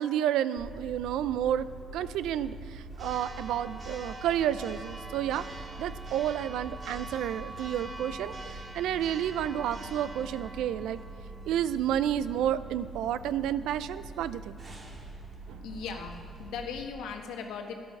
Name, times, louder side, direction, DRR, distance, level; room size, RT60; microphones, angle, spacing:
voice 1, 0.0-1.7 1.9-5.5 5.8-11.0 11.5-14.6 15.5-15.6, right 10 dB, 85° right, 15 dB, 0.4 m, -30 dB
Church bell, 0.6-16.9, right 2 dB, 40° right, 2.2 m, -43 dB
voice 2, 15.6-17.7, left 6 dB, 90° left, 4 dB, 1.3 m, -38 dB
13.0 x 11.0 x 5.9 m, 2.4 s
cardioid pair, 90°, 0 cm